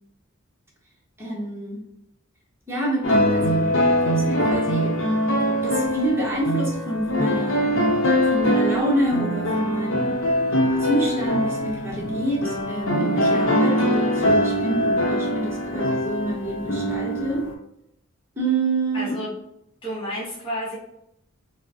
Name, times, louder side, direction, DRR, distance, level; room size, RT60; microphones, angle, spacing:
voice 1, 1.2-1.8 2.7-5.0 5.4-7.8 8.3-10.2 10.8-17.5 18.4-19.1, right 1 dB, 10° right, -4 dB, 0.9 m, -27 dB
sound 1, 3.0-17.5, equal, 65° left, 0.7 m, -22 dB
voice 2, 18.9-19.4 19.8-20.8, equal, 25° left, -7 dB, 0.8 m, -30 dB
4.7 x 2.0 x 2.8 m, 0.78 s
head